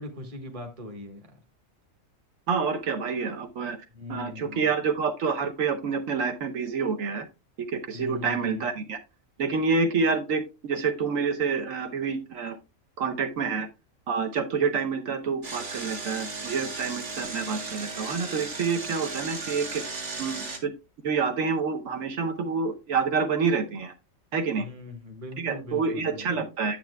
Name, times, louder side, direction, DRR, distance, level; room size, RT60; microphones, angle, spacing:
voice 1, 0.0-1.4 3.9-4.7 7.9-8.7 24.6-26.3, left 2 dB, 25° right, 1.3 m, -40 dB
voice 2, 2.5-3.8 4.1-7.3 7.6-9.0 9.4-12.6 13.0-13.7 14.1-19.8 20.2-20.7 21.0-23.9 24.3-24.7 25.4-26.8, right 5 dB, 75° right, 1.3 m, -28 dB
Engine, 15.4-20.6, right 3 dB, 60° right, 1.7 m, -36 dB
9.0 x 7.4 x 2.2 m
omnidirectional pair, 1.4 m